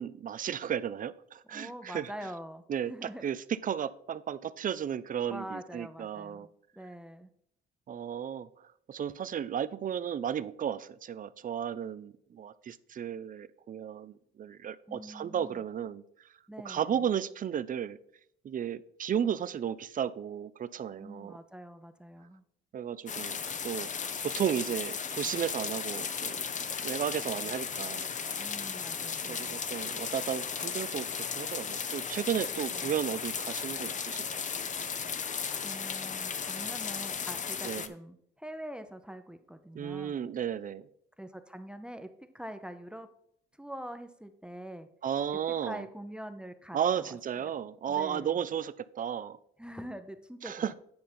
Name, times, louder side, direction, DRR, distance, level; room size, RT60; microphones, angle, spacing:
voice 1, 0.0-2.1 2.7-6.5 7.9-8.5 8.9-16.0 16.6-18.0 18.4-21.4 22.7-23.9 24.2-26.4 26.8-28.1 29.2-34.4 37.6-37.9 39.7-40.8 45.0-45.8 46.7-49.4 50.4-50.7, right 9 dB, 45° right, 16 dB, 0.5 m, -34 dB
voice 2, 1.4-2.6 2.9-3.2 5.3-7.3 14.9-15.6 16.5-17.0 21.0-22.4 28.4-29.6 32.5-32.9 35.6-40.2 41.2-43.1 43.6-44.9 45.3-47.6 47.9-48.5 49.6-50.7, equal, 5° right, 9 dB, 0.7 m, -44 dB
sound 1, 23.1-37.9, left 6 dB, 40° left, 0.6 m, -35 dB
9.6 x 5.2 x 4.4 m, 0.70 s
cardioid pair, 90°, 20 cm